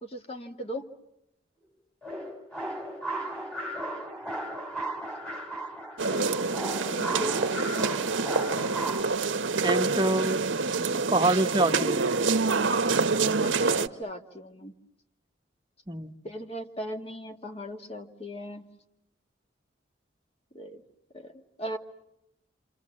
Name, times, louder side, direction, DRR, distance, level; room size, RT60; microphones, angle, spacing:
voice 1, 0.0-0.9 6.9-7.9 13.4-14.7 16.2-18.7 20.5-20.8 21.1-21.8, equal, 30° left, 5 dB, 1.9 m, -38 dB
sound 1, 2.0-9.0, right 1 dB, 5° left, 2.9 m, -35 dB
sound 2, 6.0-13.9, right 4 dB, 85° right, 1.0 m, -26 dB
voice 2, 9.6-10.4 11.1-12.1 15.9-16.1, right 2 dB, 25° right, 5 dB, 1.1 m, -25 dB
28.5 x 27.0 x 7.5 m, 0.82 s
head